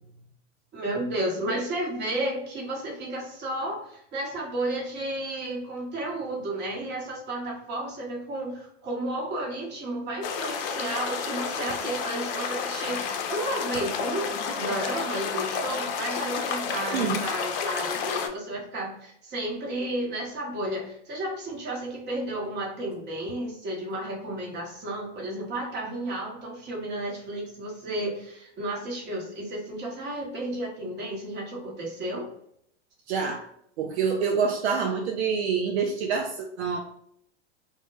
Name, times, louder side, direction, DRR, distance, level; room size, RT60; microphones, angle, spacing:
voice 1, 0.7-32.3, right 1 dB, 30° right, -1 dB, 0.9 m, -32 dB
sound 1, 10.2-18.3, left 6 dB, 55° left, 0.5 m, -30 dB
voice 2, 16.9-17.2 33.1-33.5 33.8-36.8, right 6 dB, 70° right, 2 dB, 0.5 m, -26 dB
2.1 x 2.1 x 3.0 m, 0.70 s
hypercardioid pair, 100°, 35 cm